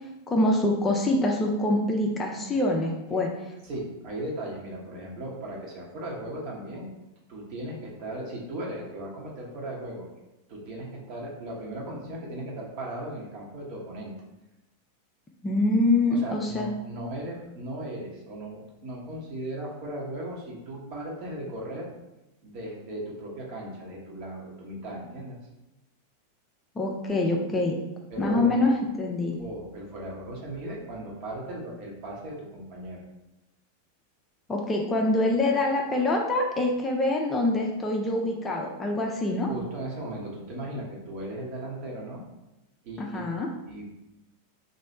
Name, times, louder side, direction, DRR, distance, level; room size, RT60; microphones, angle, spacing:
voice 1, 0.3-3.3 15.4-16.7 26.8-27.8 28.2-29.4 34.5-39.5 43.0-43.5, left 2 dB, 15° left, 0 dB, 0.5 m, -25 dB
voice 2, 3.6-6.9 7.3-10.1 10.5-14.1 16.1-21.9 22.4-25.4 28.1-28.7 29.4-33.0 39.5-42.2 42.8-43.3 43.7-43.8, right 1 dB, 45° right, -2 dB, 1.0 m, -37 dB
3.2 x 2.7 x 4.1 m, 0.95 s
figure-of-eight pair, 90°, 0 cm